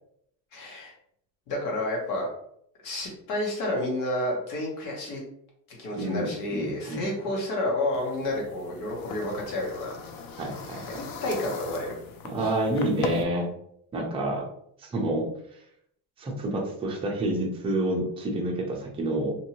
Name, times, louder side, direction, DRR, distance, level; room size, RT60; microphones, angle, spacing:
voice 1, 0.5-0.9 1.5-2.3 2.8-5.2 5.7-10.0 11.2-12.0 12.4-12.5, left 1 dB, 80° left, -2 dB, 1.3 m, -30 dB
voice 2, 5.9-7.1 10.4-10.9 12.2-13.5 13.9-14.4 14.8-15.3 16.2-19.3, right 1 dB, 15° right, -1 dB, 0.4 m, -28 dB
sound 1, 7.9-13.2, left 5 dB, 50° left, 0.5 m, -39 dB
2.7 x 2.6 x 2.9 m, 0.71 s
cardioid pair, 145°, 47 cm